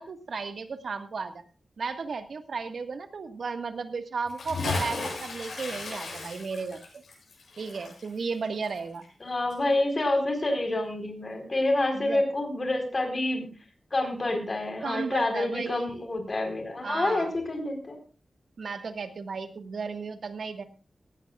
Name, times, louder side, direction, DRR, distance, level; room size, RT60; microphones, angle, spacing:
voice 1, 0.0-1.4 1.8-6.8 7.6-9.0 11.9-12.2 14.8-16.0 16.8-17.3 18.6-20.6, right 4 dB, 70° right, 8 dB, 1.6 m, -34 dB
Bathtub (filling or washing) / Splash splatter, 4.3-9.2 9.5-9.6, left 3 dB, 80° left, 7.7 m, -35 dB
voice 2, 9.2-13.5 13.9-18.0, left 2 dB, 35° left, 4 dB, 4.3 m, -28 dB
18.5 x 15.5 x 2.4 m, 0.35 s
wide cardioid pair, 125°, 0 cm